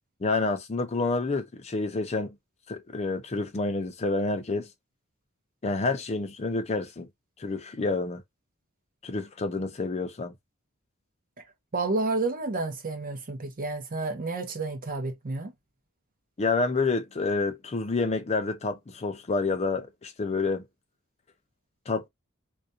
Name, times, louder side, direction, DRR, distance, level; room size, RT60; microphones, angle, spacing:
voice 1, 0.2-2.4 2.7-4.7 5.6-7.1 7.4-8.2 9.0-10.3 16.4-20.7 21.9-22.1, left 3 dB, 30° left, 0.5 m, -28 dB
voice 2, 11.7-15.5, right 3 dB, 40° right, 0.7 m, -30 dB
2.4 x 2.1 x 2.6 m
head